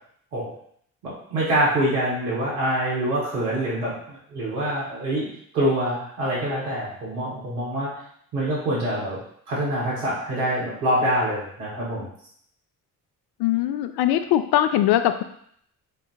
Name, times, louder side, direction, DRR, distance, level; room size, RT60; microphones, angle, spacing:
voice 1, 1.0-5.3 5.5-7.9 8.3-9.2 9.5-12.1, right 1 dB, 85° right, -6 dB, 1.6 m, -25 dB
voice 2, 13.4-15.2, left 12 dB, 60° left, 9 dB, 0.5 m, -21 dB
6.1 x 2.7 x 2.5 m, 0.66 s
hypercardioid pair, 45°, 44 cm